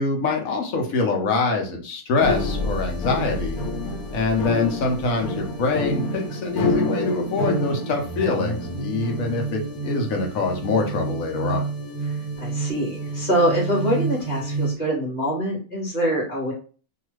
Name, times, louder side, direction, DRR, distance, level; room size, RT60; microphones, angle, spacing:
voice 1, 0.0-3.6 4.1-11.6, left 3 dB, 70° left, 1 dB, 1.1 m, -24 dB
sound 1, 2.2-14.7, equal, 90° left, 1.2 m, -28 dB
voice 2, 12.4-16.5, right 1 dB, 25° left, -5 dB, 1.2 m, -24 dB
2.7 x 2.4 x 3.0 m, 0.37 s
omnidirectional pair, 1.5 m